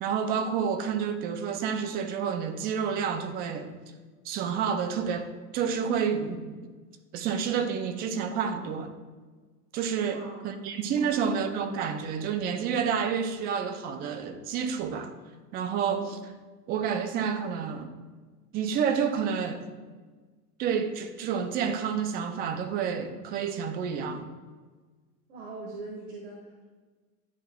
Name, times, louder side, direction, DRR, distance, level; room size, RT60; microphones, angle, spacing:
voice 1, 0.0-3.7 4.3-5.3 5.5-6.5 7.1-8.9 9.7-15.1 15.5-16.3 16.7-17.9 18.5-19.6 20.6-24.2, right 7 dB, 25° right, 8 dB, 0.3 m, -29 dB
voice 2, 10.0-10.5 11.0-11.4 25.3-26.6, right 3 dB, 70° right, -2 dB, 1.4 m, -42 dB
10.5 x 4.8 x 2.2 m, 1.4 s
hypercardioid pair, 105°, 46 cm